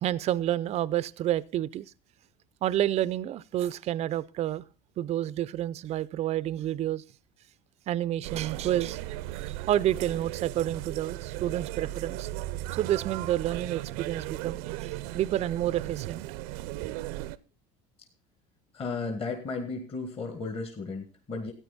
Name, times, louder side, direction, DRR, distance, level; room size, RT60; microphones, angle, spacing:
voice 1, 0.0-1.9 2.6-4.6 5.0-7.0 7.9-9.0 9.4-12.3 12.7-16.2 16.8-16.9, right 12 dB, 35° right, 0.5 m, -29 dB
sound 1, 8.2-17.4, right 16 dB, 80° right, 0.6 m, -36 dB
voice 2, 18.7-21.5, left 4 dB, 35° left, 1.8 m, -34 dB
13.5 x 9.3 x 4.1 m
supercardioid pair, 125°, 18 cm